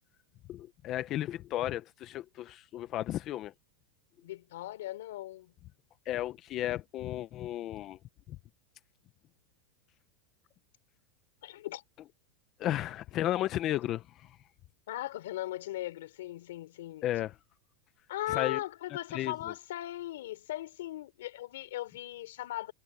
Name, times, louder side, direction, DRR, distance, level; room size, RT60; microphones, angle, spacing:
voice 1, 0.5-3.5 6.1-8.0 12.6-14.4 17.0-17.3 18.3-18.6 19.1-19.3, left 13 dB, 25° left, 0.6 m, -34 dB
voice 2, 4.2-5.5 11.4-11.8 12.7-12.8 14.9-17.0 18.1-22.7, left 15 dB, 70° left, 3.5 m, -38 dB
supercardioid pair, 170°, 0 cm